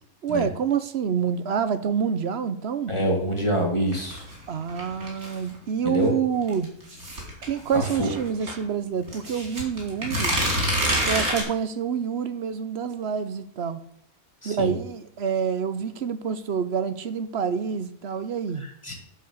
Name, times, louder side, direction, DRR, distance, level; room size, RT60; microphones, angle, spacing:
voice 1, 0.2-2.9 4.5-6.7 7.4-10.4 10.9-13.8 14.4-18.7, right 7 dB, 55° right, 12 dB, 0.9 m, -27 dB
voice 2, 2.9-4.3 5.8-6.1 7.7-8.1 14.4-14.8 18.6-18.9, equal, 20° left, 0 dB, 2.7 m, -26 dB
sound 1, 3.9-5.5 6.5-8.6 9.1-11.4, right 1 dB, 70° right, 4.9 m, -27 dB
11.0 x 5.8 x 6.6 m, 0.70 s
omnidirectional pair, 1.5 m